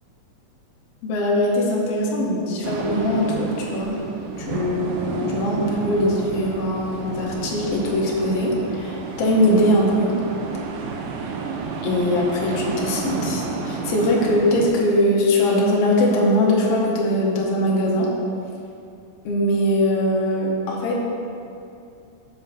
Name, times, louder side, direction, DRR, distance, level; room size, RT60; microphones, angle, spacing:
voice 1, 1.0-3.9 4.4-10.2 11.8-18.1 19.2-21.0, left 1 dB, 80° left, -3 dB, 1.4 m, -21 dB
sound 1, 2.6-14.7, right 5 dB, 80° right, 2.3 m, -30 dB
5.5 x 5.5 x 5.7 m, 2.6 s
omnidirectional pair, 4.1 m